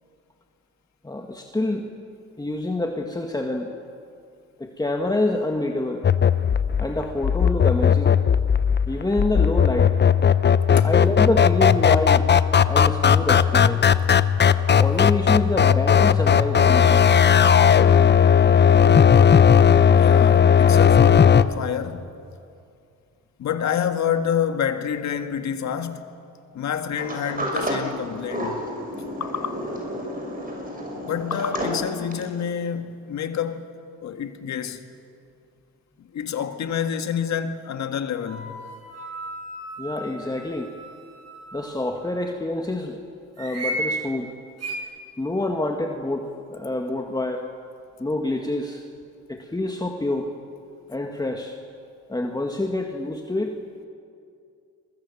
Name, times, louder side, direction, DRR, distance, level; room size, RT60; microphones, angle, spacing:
voice 1, 1.0-1.8 2.4-3.7 4.6-6.0 6.8-8.2 8.9-9.9 10.8-12.3 12.7-13.9 14.8-17.1 39.8-40.7 41.5-43.0 43.4-44.3 45.2-47.4 48.0-48.8 49.3-50.3 50.9-51.5 52.1-53.8, left 2 dB, 15° left, 1.9 m, -27 dB
sound 1, 6.0-21.4, left 7 dB, 35° left, 0.9 m, -16 dB
voice 2, 19.9-22.1 23.4-26.0 26.5-28.6 29.2-29.7 31.0-33.7 34.0-34.9 36.0-38.6, left 8 dB, 65° left, 1.9 m, -28 dB
Sliding door, 27.0-32.4, equal, 30° right, 6.2 m, -31 dB
sound 2, 38.3-42.1 43.4-43.9 44.6-44.8, right 1 dB, 55° right, 7.0 m, -35 dB
30.0 x 23.0 x 7.2 m
cardioid pair, 90°, 30 cm